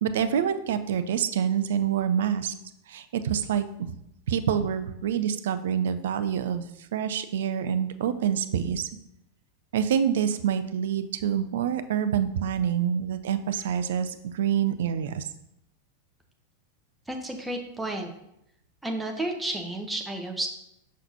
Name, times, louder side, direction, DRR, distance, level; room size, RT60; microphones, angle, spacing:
voice 1, 0.0-2.5 2.9-3.9 4.3-6.6 6.9-8.9 9.7-15.3, right 8 dB, 60° right, 11 dB, 0.4 m, -26 dB
voice 2, 17.1-18.1 18.8-20.5, right 1 dB, 5° right, 2 dB, 0.9 m, -31 dB
6.1 x 5.7 x 2.8 m, 0.79 s
figure-of-eight pair, 90°, 0 cm